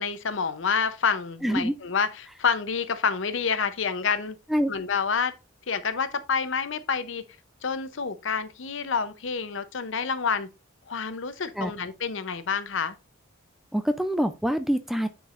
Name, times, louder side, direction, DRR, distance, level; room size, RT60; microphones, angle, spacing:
voice 1, 0.0-4.4 4.7-5.3 5.7-7.2 7.6-10.5 10.9-13.0, left 5 dB, 65° left, 0.7 m, -28 dB
voice 2, 1.4-1.7 4.5-4.7 11.6-11.7 13.7-15.1, equal, ahead, 0.4 m, -25 dB
9.2 x 4.6 x 2.5 m
head